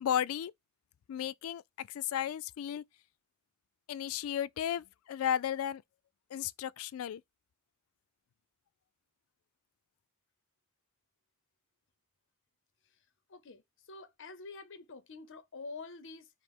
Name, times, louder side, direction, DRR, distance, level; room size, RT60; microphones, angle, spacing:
voice 1, 0.0-0.5 1.1-2.8 3.9-5.8 6.3-7.2, left 9 dB, 85° left, 0.3 m, -34 dB
voice 2, 13.3-13.6 13.9-16.3, left 3 dB, 65° left, 0.7 m, -47 dB
4.8 x 2.0 x 3.6 m
head